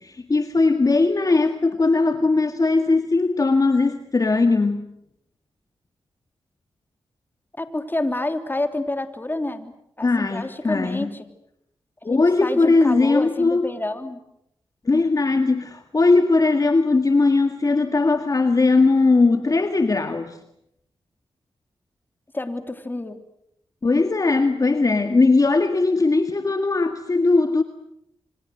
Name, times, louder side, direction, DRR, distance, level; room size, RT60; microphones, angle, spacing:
voice 1, 0.0-4.9 10.0-11.1 12.0-13.6 14.9-20.4 23.8-27.6, left 3 dB, 40° left, 7 dB, 1.9 m, -19 dB
voice 2, 7.6-11.3 12.0-14.2 22.3-23.2, left 2 dB, 20° left, 8 dB, 3.2 m, -28 dB
28.0 x 25.5 x 8.0 m, 0.78 s
cardioid pair, 60°, 9 cm